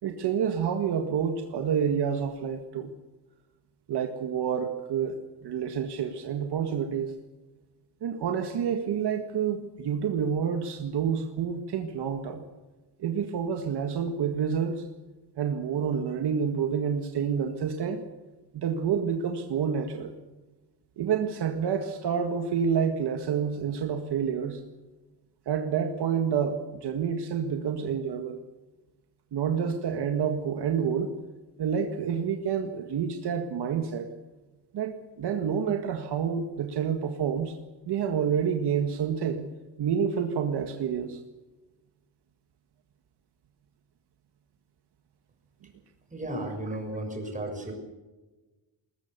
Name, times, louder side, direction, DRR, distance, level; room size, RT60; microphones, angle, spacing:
voice 1, 0.0-2.9 3.9-7.1 8.0-12.4 13.0-14.8 15.4-18.0 18.5-20.1 21.0-24.6 25.5-28.4 29.3-31.1 31.6-34.1 34.7-37.5 37.9-39.5 39.8-41.2, right 7 dB, 65° right, 5 dB, 1.8 m, -28 dB
voice 2, 46.1-47.7, right 1 dB, 15° right, 2 dB, 6.6 m, -34 dB
21.0 x 20.5 x 6.8 m, 1.2 s
cardioid pair, 135°, 43 cm